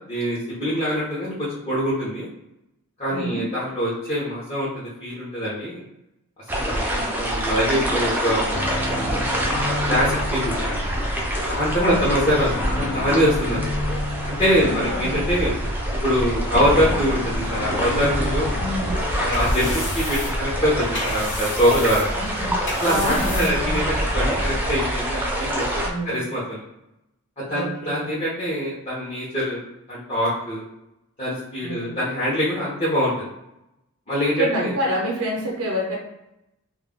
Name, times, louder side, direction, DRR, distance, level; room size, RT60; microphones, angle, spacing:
voice 1, 0.1-2.3 3.0-5.8 6.5-8.6 8.9-9.2 9.9-10.8 11.5-13.6 14.3-15.5 16.0-18.6 19.2-22.1 22.8-26.6 27.4-29.6 29.9-30.6 31.2-33.3 34.1-34.7, equal, 25° left, -9 dB, 0.7 m, -24 dB
voice 2, 3.1-3.5 11.8-12.2 14.5-15.2 18.6-19.0 22.1-24.3 25.8-26.3 27.5-28.2 31.6-32.0 34.4-36.0, right 1 dB, 85° right, -2 dB, 0.6 m, -28 dB
sound 1, 6.5-25.9, equal, 10° right, 0.3 m, -26 dB
sound 2, 7.6-23.9, left 2 dB, 70° left, 0.4 m, -34 dB
sound 3, 18.9-24.0, left 2 dB, 55° left, 1.0 m, -34 dB
2.2 x 2.1 x 3.5 m, 0.89 s
head